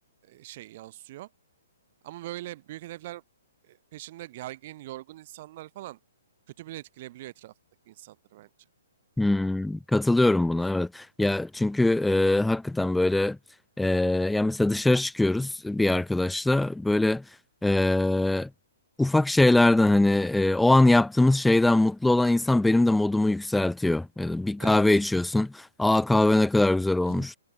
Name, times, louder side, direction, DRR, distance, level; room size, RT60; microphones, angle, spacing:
voice 1, 0.2-1.3 2.0-3.2 3.6-6.0 6.6-7.5 7.9-8.5 24.6-24.8 27.1-27.3, right 16 dB, 40° right, 2.7 m, -42 dB
voice 2, 9.2-13.4 13.8-17.2 17.6-18.5 19.0-27.4, left 2 dB, 5° left, 0.4 m, -22 dB
figure-of-eight pair, 125°, 0 cm